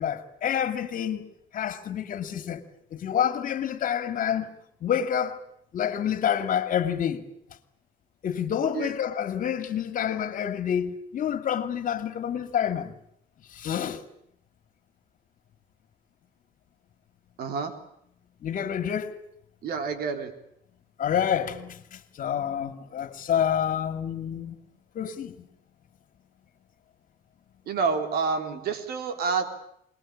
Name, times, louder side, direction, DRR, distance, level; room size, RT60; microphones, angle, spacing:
voice 1, 0.0-2.6 2.9-4.5 4.8-5.4 5.7-7.3 8.2-12.9 13.5-14.0 18.4-19.2 21.0-24.6 24.9-25.5, left 9 dB, 55° left, 2.5 m, -28 dB
voice 2, 17.4-17.7 19.6-20.3 27.7-29.5, right 5 dB, 65° right, 3.8 m, -28 dB
27.0 x 20.5 x 8.8 m
cardioid pair, 110°, 17 cm